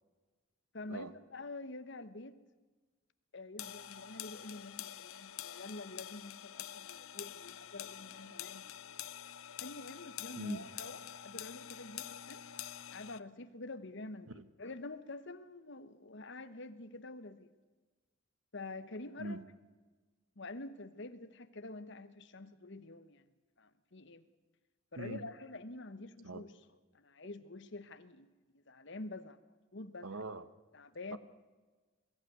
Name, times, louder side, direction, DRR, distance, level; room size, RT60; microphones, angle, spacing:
voice 1, 0.7-2.4 3.3-8.7 9.6-12.4 12.9-17.5 18.5-19.4 20.4-23.2 23.6-24.2 24.9-26.5 26.9-28.3 28.7-29.4 29.7-30.1 30.7-31.2, left 2 dB, 60° left, 11 dB, 1.2 m, -47 dB
sound 1, 3.6-13.2, left 11 dB, 80° left, 0.7 m, -47 dB
voice 2, 10.4-10.7 14.3-14.4 19.2-19.4 25.0-25.3 26.2-26.5 30.0-30.4 31.1-31.2, right 2 dB, 85° right, 13 dB, 1.2 m, -42 dB
22.0 x 14.5 x 9.5 m, 1.3 s
head